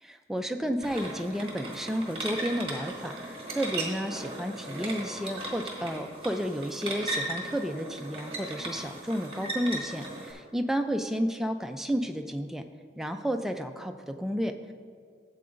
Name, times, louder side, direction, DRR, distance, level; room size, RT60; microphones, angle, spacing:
voice 1, 0.0-12.6 13.0-14.7, equal, ahead, 5 dB, 0.4 m, -32 dB
sound 1, 0.8-10.3, right 1 dB, 30° right, 1.5 m, -37 dB
13.0 x 7.7 x 2.5 m, 2.2 s
head